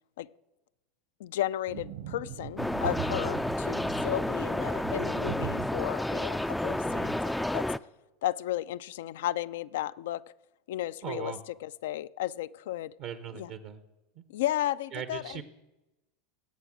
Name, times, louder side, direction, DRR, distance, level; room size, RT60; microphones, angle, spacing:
voice 1, 1.2-7.6 8.2-10.2 10.7-11.3 11.6-12.9 13.3-13.5 14.3-15.4, left 13 dB, 70° left, 0.4 m, -34 dB
sound 1, 1.7-7.2, right 9 dB, 75° right, 3.3 m, -41 dB
sound 2, 2.6-7.8, left 1 dB, 5° left, 0.4 m, -31 dB
voice 2, 11.0-11.4 13.0-13.8 14.1-14.2 14.9-15.4, right 8 dB, 55° right, 1.0 m, -38 dB
18.5 x 8.2 x 6.1 m
hypercardioid pair, 85°, 0 cm